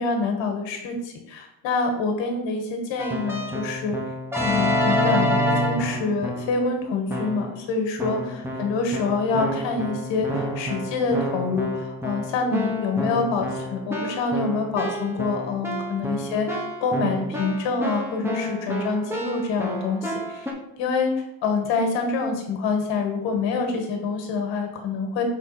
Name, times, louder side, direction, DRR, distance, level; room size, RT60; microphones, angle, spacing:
voice 1, 0.0-4.0 4.4-20.5 20.8-25.2, left 4 dB, 75° left, 3 dB, 1.6 m, -26 dB
Keyboard (musical), 3.0-6.6 7.1-7.6 8.0-20.5, equal, 5° right, 0.8 m, -28 dB
6.3 x 3.8 x 4.2 m, 0.86 s
cardioid pair, 145°, 44 cm